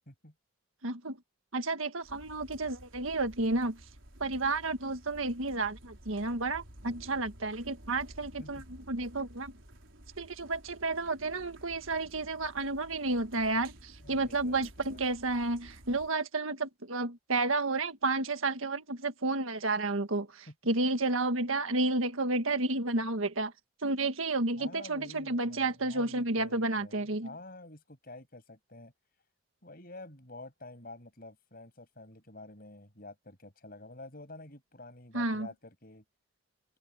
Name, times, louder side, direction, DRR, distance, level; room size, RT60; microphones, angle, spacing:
voice 1, 0.8-1.2 1.5-3.8 4.2-9.5 10.2-23.5 23.8-27.3 35.1-35.5, right 2 dB, 85° right, 1.7 m, -31 dB
sound 1, 2.0-16.1, right 1 dB, 70° right, 4.5 m, -53 dB
voice 2, 14.0-15.0 20.5-20.6 24.6-28.9 29.6-36.0, left 2 dB, 45° left, 6.3 m, -49 dB
head